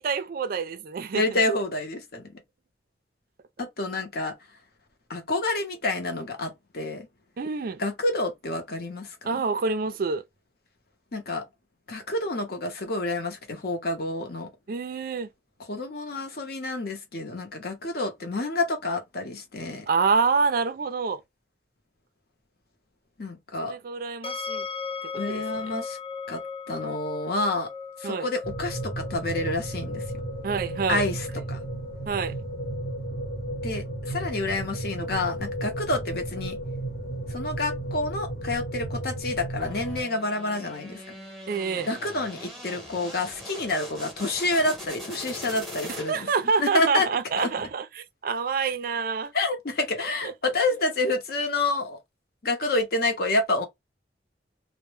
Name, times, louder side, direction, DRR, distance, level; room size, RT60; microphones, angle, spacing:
voice 1, 0.0-1.4 7.4-7.8 9.2-10.2 14.7-15.3 19.9-21.2 23.6-24.7 25.0-25.8 28.0-28.3 30.4-31.1 32.1-32.4 41.5-41.9 45.9-49.3 50.2-50.3, right 5 dB, 50° right, 0.3 m, -27 dB
voice 2, 1.1-2.3 3.6-4.3 5.1-7.1 7.8-9.1 11.1-11.4 11.9-14.5 15.7-19.9 23.2-23.8 25.1-26.0 26.3-26.4 26.7-27.7 28.0-30.0 30.9-31.2 31.5-31.6 33.6-36.6 37.3-41.0 41.8-46.3 46.6-47.1 47.4-47.5 49.3-52.0 52.4-53.7, left 2 dB, 55° left, 0.7 m, -28 dB
sound 1, 24.2-37.2, left 5 dB, 30° left, 0.3 m, -40 dB
sound 2, 28.4-40.0, right 1 dB, 75° left, 1.0 m, -33 dB
sound 3, 39.6-46.4, left 1 dB, ahead, 0.9 m, -41 dB
2.1 x 2.1 x 3.1 m
head